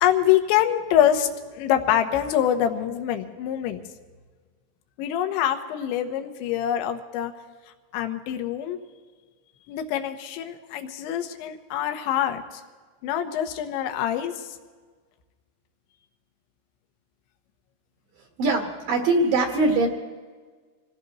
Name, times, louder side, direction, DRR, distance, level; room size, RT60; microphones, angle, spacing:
voice 1, 0.0-3.8 5.0-7.3 7.9-8.8 9.7-12.4 13.0-14.5, left 10 dB, 75° left, 6 dB, 3.3 m, -25 dB
voice 2, 18.4-19.9, right 2 dB, 60° right, 2 dB, 2.6 m, -22 dB
26.5 x 17.5 x 3.1 m, 1.5 s
omnidirectional pair, 5.6 m